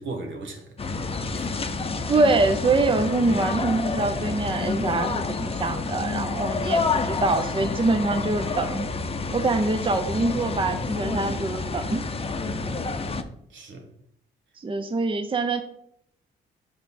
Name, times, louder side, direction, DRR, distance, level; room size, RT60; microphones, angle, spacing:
voice 1, 0.0-1.5 12.5-13.2 13.5-13.9, right 3 dB, 70° right, 1.4 m, -39 dB
sound 1, 0.8-13.2, left 4 dB, 30° left, 0.7 m, -29 dB
voice 2, 2.1-8.9 9.3-12.0 14.6-15.6, right 3 dB, 25° right, 0.7 m, -24 dB
5.6 x 5.2 x 4.2 m
supercardioid pair, 60°, 21 cm